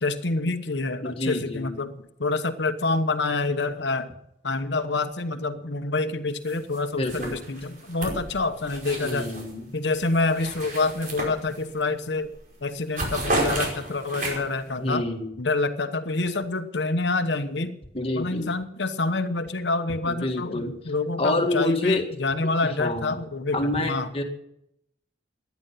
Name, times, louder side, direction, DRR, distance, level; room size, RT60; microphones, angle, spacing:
voice 1, 0.0-1.9 2.2-4.1 4.4-9.3 9.7-12.3 12.6-15.0 15.4-17.7 18.1-24.1, left 3 dB, 90° left, 9 dB, 1.1 m, -27 dB
voice 2, 1.0-1.7 7.0-7.4 9.0-9.6 14.8-15.3 17.9-18.5 20.0-20.7 21.2-22.0 22.6-23.2 23.5-24.2, left 2 dB, 35° left, 4 dB, 1.9 m, -27 dB
sound 1, 6.5-6.8 7.1-9.5 9.9-11.8 12.2-12.4 12.7-14.6, right 2 dB, 50° right, 5.2 m, -32 dB
16.0 x 11.0 x 5.7 m, 0.77 s
head